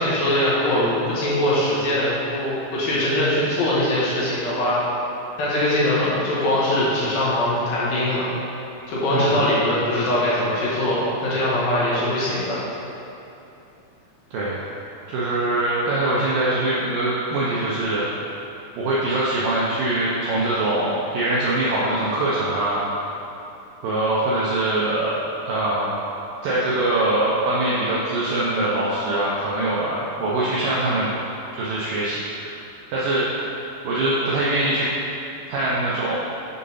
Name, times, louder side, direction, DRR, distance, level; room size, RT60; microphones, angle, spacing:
voice 1, 0.0-4.8 5.4-8.3 8.9-12.6, left 1 dB, 65° left, -8 dB, 2.7 m, -22 dB
voice 2, 15.1-18.0 18.8-22.8 23.8-25.2 25.4-25.9 26.4-31.1 31.5-32.6 32.9-33.3 33.8-34.9 35.5-36.2, right 2 dB, 90° right, -7 dB, 1.8 m, -23 dB
7.2 x 3.7 x 5.5 m, 2.9 s
omnidirectional pair, 4.9 m